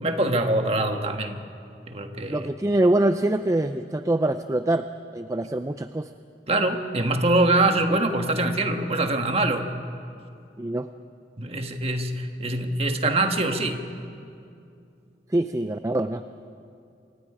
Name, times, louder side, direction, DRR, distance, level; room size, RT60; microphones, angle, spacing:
voice 1, 0.0-1.4 1.9-2.5 6.5-9.7 11.4-13.8, right 2 dB, 35° right, 5 dB, 1.4 m, -24 dB
voice 2, 2.3-4.9 5.1-6.1 10.6-10.9 15.3-16.2, right 1 dB, 20° right, 9 dB, 0.4 m, -24 dB
27.5 x 24.5 x 5.0 m, 2.5 s
head